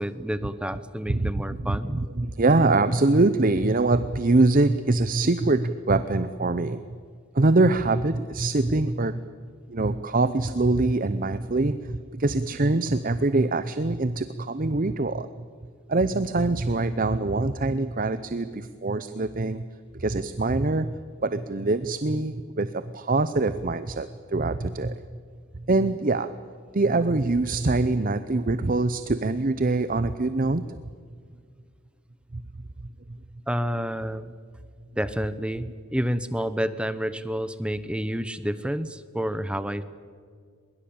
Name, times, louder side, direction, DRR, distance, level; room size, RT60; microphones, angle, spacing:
voice 1, 0.0-2.0 33.5-34.4 35.0-39.8, equal, 5° right, 13 dB, 0.9 m, -29 dB
voice 2, 1.6-6.8 7.3-9.2 9.7-15.3 15.9-19.7 19.9-25.0 25.7-26.3 26.7-30.7 32.3-32.4, right 2 dB, 40° right, 12 dB, 0.7 m, -24 dB
22.0 x 22.0 x 8.8 m, 2.1 s
head